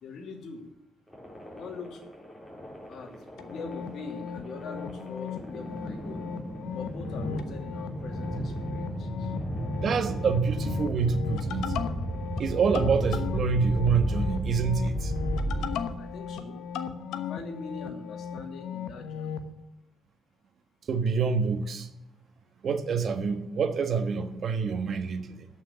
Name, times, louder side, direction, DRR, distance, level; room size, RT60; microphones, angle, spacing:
voice 1, 0.0-0.6 1.5-2.0 2.9-3.1 3.4-6.2 6.7-9.3 16.0-16.6 17.1-19.4, left 4 dB, 70° left, 3 dB, 2.7 m, -42 dB
sound 1, 1.1-16.2, right 1 dB, 10° left, 4.4 m, -34 dB
sound 2, 3.4-19.5, left 7 dB, 90° left, 1.1 m, -37 dB
voice 2, 9.8-11.7 12.4-15.1 20.9-21.9 22.6-25.5, right 5 dB, 55° right, 9 dB, 1.4 m, -27 dB
13.0 x 6.2 x 8.5 m, 0.89 s
cardioid pair, 90°, 0 cm